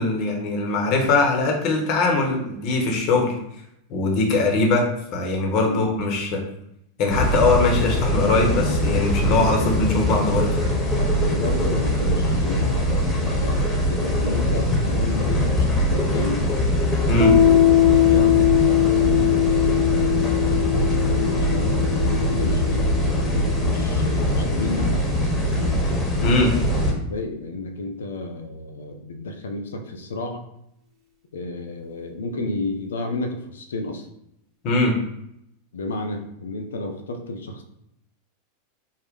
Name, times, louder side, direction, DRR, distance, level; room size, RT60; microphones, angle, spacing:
voice 1, 0.0-3.3 3.9-4.9 5.1-6.4 7.0-10.6 17.1-17.3 26.2-26.5 34.6-34.9, left 3 dB, 45° left, 1 dB, 0.9 m, -21 dB
voice 2, 5.5-5.9 11.0-13.6 13.9-16.4 17.2-22.9 23.6-25.6 27.1-30.5 31.3-34.1 35.7-37.6, left 2 dB, 70° left, 6 dB, 0.5 m, -31 dB
sound 1, 7.1-26.9, equal, 15° left, 1.0 m, -22 dB
Piano, 17.2-24.5, left 12 dB, 40° right, 0.8 m, -21 dB
3.9 x 2.1 x 3.5 m, 0.78 s
figure-of-eight pair, 90°, 0 cm